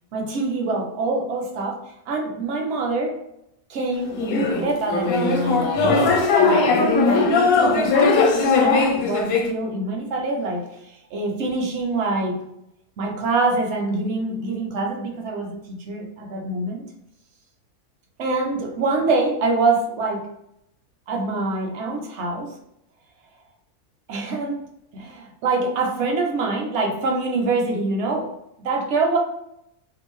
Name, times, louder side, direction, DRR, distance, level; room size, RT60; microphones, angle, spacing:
voice 1, 0.1-3.2 3.7-6.3 7.0-8.3 8.6-12.4 13.0-16.9 18.2-20.3 21.1-22.5 24.1-24.6 24.9-28.3 28.6-29.2, right 3 dB, 65° right, 1 dB, 0.8 m, -25 dB
sound 1, 4.2-9.5, left 3 dB, 70° left, 1.0 m, -19 dB
2.6 x 2.4 x 3.0 m, 0.79 s
omnidirectional pair, 1.6 m